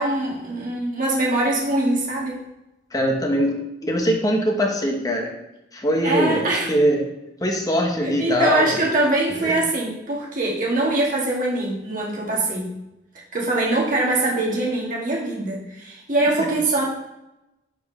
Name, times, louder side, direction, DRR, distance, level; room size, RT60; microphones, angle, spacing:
voice 1, 0.0-2.4 6.0-6.7 8.0-12.7 13.3-16.9, right 2 dB, 50° right, -3 dB, 1.9 m, -23 dB
voice 2, 2.9-3.6 3.8-5.3 5.7-7.0 7.4-8.8 9.4-9.5 16.4-16.5, equal, 20° left, 1 dB, 0.9 m, -22 dB
4.8 x 4.6 x 5.5 m, 0.92 s
head